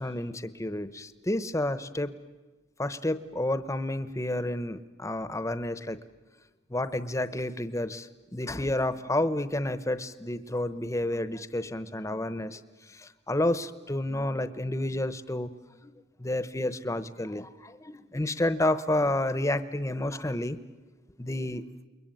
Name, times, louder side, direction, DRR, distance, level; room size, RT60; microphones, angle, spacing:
voice 1, 0.0-2.2 2.8-6.0 6.7-12.6 12.9-15.9 16.2-20.6 21.2-21.6, left 1 dB, 15° left, 13 dB, 0.9 m, -30 dB
29.0 x 22.0 x 9.2 m, 1.2 s
head